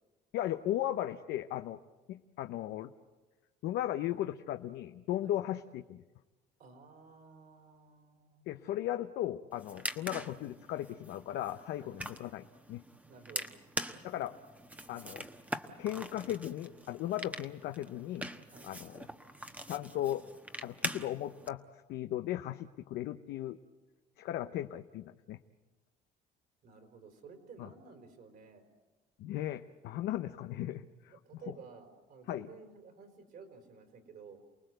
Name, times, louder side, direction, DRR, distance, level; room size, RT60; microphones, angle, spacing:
voice 1, 0.3-1.8 2.1-2.9 3.6-6.0 8.5-12.8 14.0-14.3 14.9-15.3 15.8-18.3 18.6-19.1 19.7-20.2 20.6-21.6 21.9-23.6 24.2-25.4 27.6-27.7 29.2-31.1 32.3-32.5, left 13 dB, 80° left, 8 dB, 0.8 m, -36 dB
voice 2, 6.6-8.5 9.8-9.9 11.8-11.9 13.1-13.5 18.5-18.7 26.6-28.6 31.1-34.4, right 5 dB, 60° right, 5 dB, 4.4 m, -53 dB
sound 1, 9.5-21.5, right 1 dB, 10° right, 1.2 m, -43 dB
28.5 x 19.5 x 7.9 m, 1.2 s
cardioid pair, 110°, 17 cm